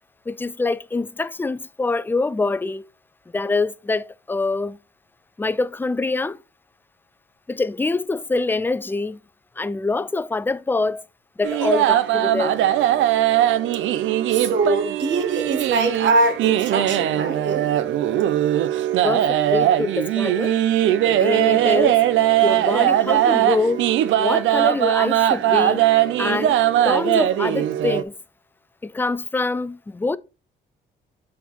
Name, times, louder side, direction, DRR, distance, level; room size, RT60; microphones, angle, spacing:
voice 1, 0.3-2.9 3.3-4.8 5.4-6.4 7.5-9.2 9.6-11.0 11.4-12.6 19.0-20.6 21.0-22.0 22.4-23.9 24.2-25.9 26.2-26.6 26.8-28.1 28.8-30.2, left 3 dB, 10° left, 0.4 m, -25 dB
sound 1, 11.4-28.0, right 12 dB, 80° right, 0.6 m, -20 dB
voice 2, 14.3-17.7, right 2 dB, 65° right, 1.6 m, -23 dB
7.3 x 4.3 x 4.1 m
cardioid pair, 90°, 20 cm